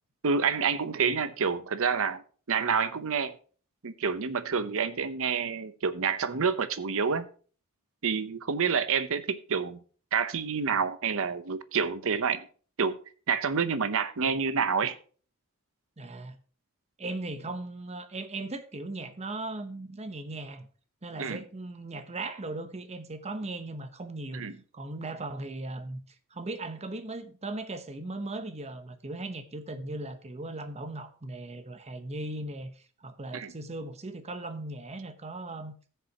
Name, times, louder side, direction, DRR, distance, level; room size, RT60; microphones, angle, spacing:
voice 1, 0.2-2.2 2.5-3.4 3.8-7.3 8.0-9.8 10.1-12.4 12.8-13.0 13.3-14.9 21.2-21.4 24.3-24.6 33.3-33.5, right 6 dB, 65° right, 0.8 m, -28 dB
voice 2, 16.0-16.4 17.0-20.7 21.0-24.4 24.7-26.0 26.3-35.7, right 2 dB, 30° right, 0.9 m, -38 dB
15.5 x 6.8 x 2.9 m
head